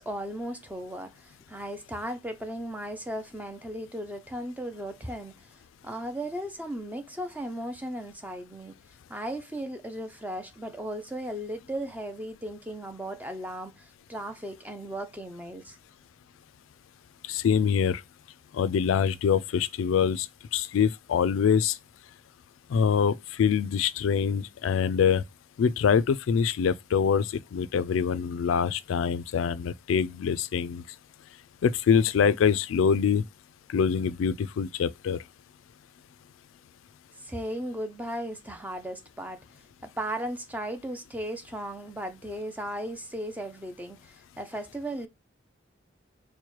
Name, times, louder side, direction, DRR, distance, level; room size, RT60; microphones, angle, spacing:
voice 1, 0.0-5.6 5.8-8.8 9.1-15.8 37.2-39.4 39.8-45.1, right 1 dB, 10° right, 0.5 m, -36 dB
voice 2, 17.3-18.0 18.5-20.3 20.5-21.8 22.7-25.2 25.6-30.8 31.6-33.2 33.7-35.2, left 7 dB, 85° left, 0.3 m, -24 dB
4.4 x 2.1 x 3.0 m
head